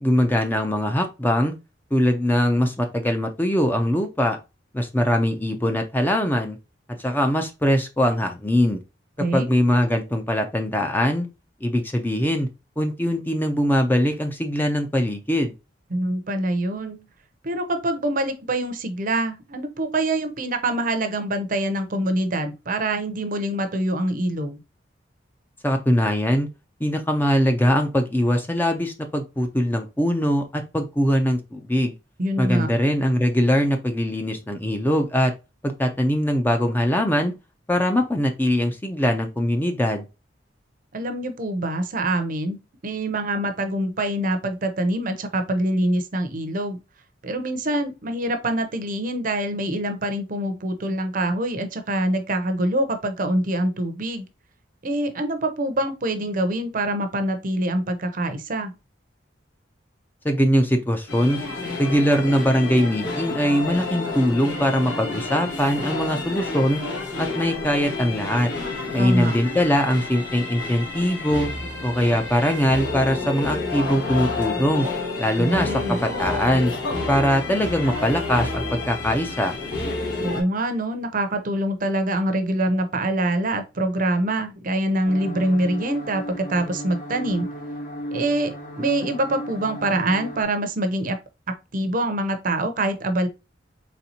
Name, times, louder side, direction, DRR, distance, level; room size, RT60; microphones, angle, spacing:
voice 1, 0.0-1.5 1.9-4.4 4.7-6.6 6.9-8.8 9.3-11.3 11.6-12.5 12.8-15.5 25.6-26.5 26.8-31.9 32.4-35.3 35.6-37.3 37.7-40.1 60.2-61.4 61.8-66.8 67.2-68.5 68.9-71.5 71.8-74.9 75.2-76.7 77.1-79.6, equal, 10° left, 0.5 m, -22 dB
voice 2, 15.9-17.0 17.4-24.6 32.2-32.7 40.9-42.6 42.8-46.8 47.2-54.2 54.8-58.7 69.0-69.3 75.4-76.0 80.2-87.5 88.1-91.2 91.5-93.3, right 1 dB, 45° right, 0.6 m, -25 dB
sound 1, 61.1-80.4, left 3 dB, 80° left, 1.7 m, -30 dB
sound 2, 85.0-90.4, equal, 45° left, 1.2 m, -35 dB
4.2 x 3.3 x 2.8 m
head